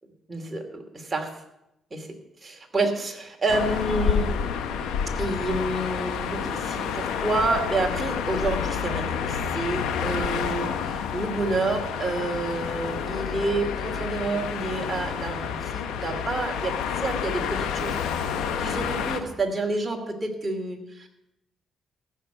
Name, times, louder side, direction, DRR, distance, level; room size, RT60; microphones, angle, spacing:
voice 1, 0.3-1.3 1.9-2.1 2.4-4.3 5.2-21.1, right 2 dB, 20° right, 2 dB, 2.7 m, -29 dB
sound 1, 3.5-19.2, left 7 dB, 90° left, 1.0 m, -29 dB
15.0 x 6.5 x 8.0 m, 0.86 s
cardioid pair, 90°, 0 cm